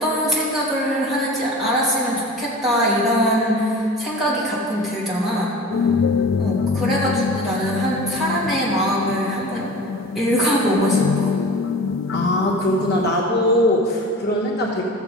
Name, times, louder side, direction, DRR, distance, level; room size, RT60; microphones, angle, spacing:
voice 1, 0.0-5.5 6.4-9.7 10.1-11.4, equal, ahead, -9 dB, 2.7 m, -22 dB
sound 1, 5.7-13.2, left 6 dB, 85° left, 0.3 m, -24 dB
voice 2, 12.1-14.8, left 1 dB, 55° left, -2 dB, 1.1 m, -20 dB
14.0 x 7.4 x 5.1 m, 2.6 s
head